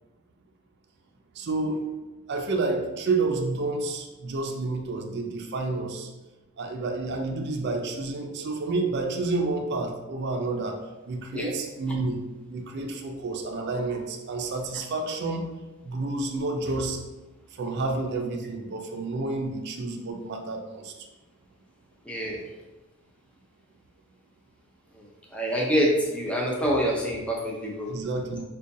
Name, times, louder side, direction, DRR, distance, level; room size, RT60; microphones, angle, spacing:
voice 1, 1.3-1.8 2.3-6.1 6.6-10.8 11.0-12.2 12.5-15.5 15.8-17.0 17.5-21.1 27.9-28.4, right 3 dB, 50° right, 3 dB, 0.4 m, -29 dB
voice 2, 22.1-22.4 24.9-25.0 25.3-27.9, equal, 5° left, -3 dB, 0.5 m, -26 dB
4.9 x 2.2 x 2.6 m, 1.1 s
head